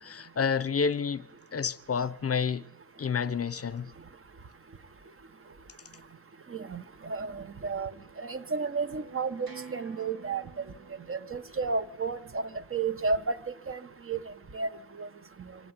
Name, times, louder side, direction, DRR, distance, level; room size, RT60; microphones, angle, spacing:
voice 1, 0.0-1.2 1.5-2.6 3.0-3.9, left 6 dB, 40° left, 0.9 m, -29 dB
voice 2, 6.7-7.9 8.2-10.4 11.1-12.4 12.7-13.3 13.7-13.8 14.1-14.2 14.5-14.7 15.0-15.1, right 4 dB, 35° right, 1.4 m, -31 dB
sound 1, 8.0-13.1, right 5 dB, 70° right, 4.9 m, -51 dB
25.0 x 17.0 x 9.0 m
wide cardioid pair, 160°, 36 cm